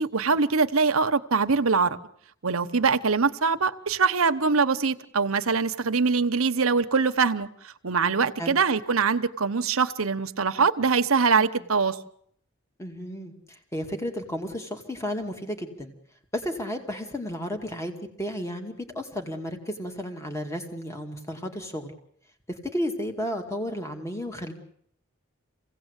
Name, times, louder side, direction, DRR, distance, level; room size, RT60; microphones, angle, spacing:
voice 1, 0.0-2.0 2.4-7.5 7.8-12.0, right 5 dB, 75° right, 10 dB, 1.0 m, -23 dB
voice 2, 12.8-15.9 16.3-21.9 22.5-24.5, equal, 15° left, 4 dB, 2.3 m, -33 dB
26.5 x 17.0 x 8.2 m, 0.69 s
head